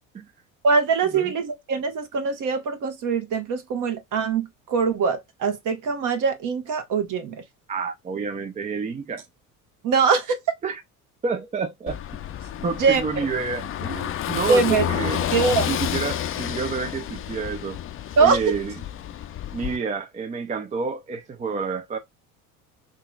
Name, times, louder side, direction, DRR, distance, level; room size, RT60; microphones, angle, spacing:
voice 1, 0.6-7.4 9.8-10.4 12.8-13.2 14.5-14.9 15.3-15.7 18.2-18.4, right 5 dB, 45° right, 1.3 m, -22 dB
voice 2, 7.7-9.2 10.6-10.8 11.2-12.0 12.6-15.2 15.7-17.8 18.2-18.8 19.5-22.0, right 5 dB, 20° right, 0.5 m, -29 dB
Car passing by / Engine, 11.9-19.8, left 11 dB, 30° left, 0.5 m, -30 dB
3.8 x 3.1 x 2.3 m
figure-of-eight pair, 60°, 42 cm